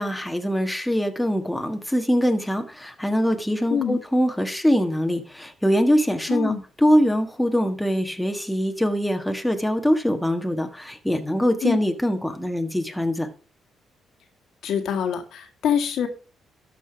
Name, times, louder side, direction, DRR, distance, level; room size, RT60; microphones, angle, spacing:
voice 1, 0.0-13.3, equal, 5° left, 4 dB, 1.5 m, -23 dB
voice 2, 3.7-4.0 6.3-6.6 11.6-11.8 14.6-16.1, left 8 dB, 75° left, 6 dB, 1.8 m, -25 dB
13.0 x 5.1 x 5.1 m, 0.36 s
cardioid pair, 90°, 0 cm